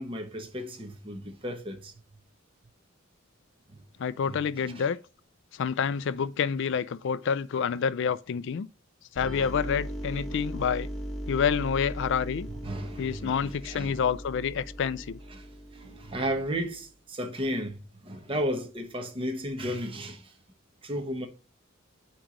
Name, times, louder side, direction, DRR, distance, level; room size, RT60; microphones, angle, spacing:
voice 1, 0.0-1.9 4.2-4.4 4.7-4.9 12.5-14.0 15.3-20.3 20.8-21.3, equal, 25° right, 0.9 m, -34 dB
voice 2, 4.0-5.0 5.5-8.7 9.2-10.9 11.3-12.5 13.0-15.2, left 7 dB, 60° left, 0.4 m, -28 dB
sound 1, 9.2-16.7, equal, ahead, 1.3 m, -38 dB
8.7 x 3.0 x 5.0 m
head